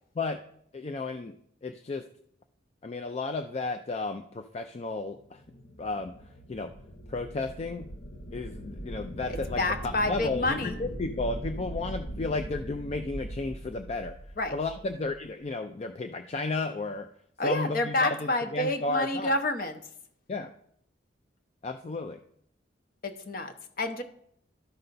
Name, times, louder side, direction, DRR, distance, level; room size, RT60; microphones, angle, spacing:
voice 1, 0.7-1.3 1.6-2.0 2.8-5.4 5.8-6.1 6.5-6.7 7.1-7.9 8.3-14.1 14.5-17.1 17.4-19.3 20.3-20.5 21.6-22.2, left 3 dB, 35° left, 7 dB, 0.3 m, -33 dB
sound 1, 5.2-15.3, equal, 85° left, 1.0 m, -40 dB
voice 2, 9.3-10.8 14.4-14.6 17.4-19.8 23.0-24.0, left 2 dB, 50° left, 8 dB, 0.7 m, -29 dB
12.5 x 5.5 x 3.9 m, 0.70 s
head